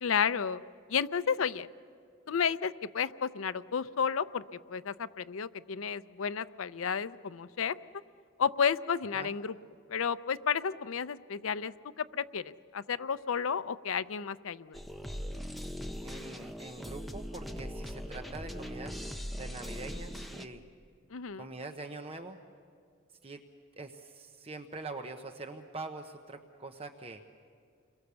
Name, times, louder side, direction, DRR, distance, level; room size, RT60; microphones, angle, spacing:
voice 1, 0.0-0.6 0.9-1.7 2.3-4.4 4.7-7.7 8.4-9.5 9.9-14.8 21.1-21.5, left 6 dB, 80° left, 14 dB, 0.6 m, -32 dB
sound 1, 14.7-20.5, equal, ahead, 0.8 m, -40 dB
voice 2, 16.0-20.6 21.3-22.4 23.2-23.4 23.8-27.2, right 3 dB, 30° right, 5 dB, 0.9 m, -44 dB
29.5 x 23.0 x 7.0 m, 2.2 s
head